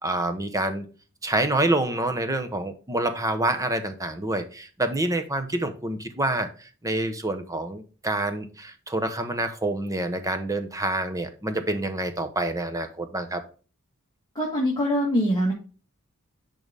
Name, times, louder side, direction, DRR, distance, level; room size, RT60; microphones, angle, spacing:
voice 1, 0.0-0.9 1.2-13.4, right 2 dB, 15° right, 8 dB, 0.9 m, -27 dB
voice 2, 14.3-15.5, equal, 20° left, -1 dB, 1.6 m, -23 dB
10.5 x 3.8 x 3.4 m, 0.37 s
head